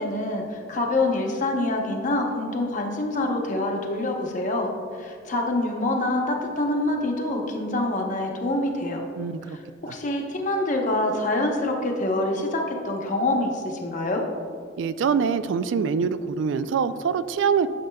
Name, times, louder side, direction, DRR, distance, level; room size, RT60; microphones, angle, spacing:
voice 1, 0.0-9.0 9.5-14.2, left 2 dB, 40° left, 1 dB, 0.8 m, -26 dB
voice 2, 9.2-9.6 9.9-10.0 14.8-17.7, right 6 dB, 70° right, 13 dB, 0.3 m, -24 dB
11.5 x 6.5 x 2.3 m, 2.3 s
head